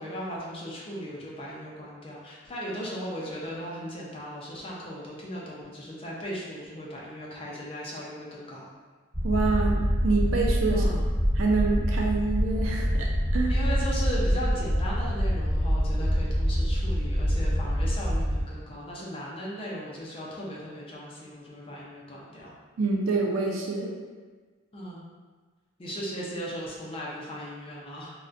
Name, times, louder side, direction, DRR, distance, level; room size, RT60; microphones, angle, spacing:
voice 1, 0.0-8.7 10.7-11.0 13.5-22.5 24.7-25.1 25.8-28.1, equal, 25° left, -5 dB, 0.4 m, -37 dB
sound 1, 9.1-18.4, equal, 10° right, 1.1 m, -25 dB
voice 2, 9.2-10.8 11.4-13.5 22.8-23.9, right 3 dB, 80° right, -1 dB, 0.4 m, -27 dB
3.6 x 2.1 x 2.5 m, 1.4 s
head